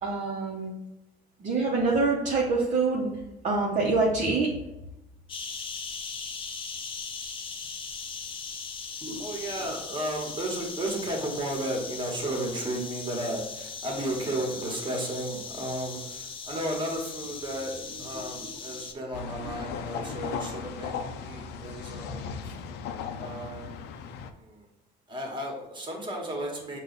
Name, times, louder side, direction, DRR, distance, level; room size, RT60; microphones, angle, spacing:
voice 1, 0.0-0.7 1.4-3.1 3.4-4.6, right 3 dB, 45° right, -4 dB, 0.9 m, -25 dB
sound 1, 5.3-18.9, left 5 dB, 30° left, 0.5 m, -39 dB
voice 2, 9.0-22.6 23.2-23.8 24.4-24.7 25.1-26.8, right 1 dB, 30° right, 0 dB, 1.3 m, -34 dB
sound 2, 19.1-24.3, left 6 dB, 85° left, 0.4 m, -36 dB
5.4 x 2.4 x 4.1 m, 0.92 s
cardioid pair, 110°, 17 cm